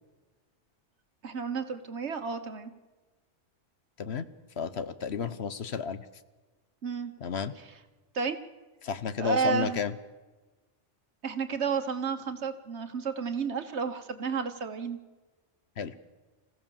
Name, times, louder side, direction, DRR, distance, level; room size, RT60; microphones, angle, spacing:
voice 1, 1.2-2.7 6.8-7.1 7.6-7.7 8.1-8.4 9.2-9.8 11.2-15.0, right 5 dB, 65° right, 9 dB, 1.6 m, -31 dB
voice 2, 4.6-6.0 7.2-7.5 8.8-9.9 15.8-15.9, left 6 dB, 65° left, 13 dB, 1.2 m, -32 dB
26.0 x 16.0 x 7.2 m, 1.2 s
omnidirectional pair, 1.2 m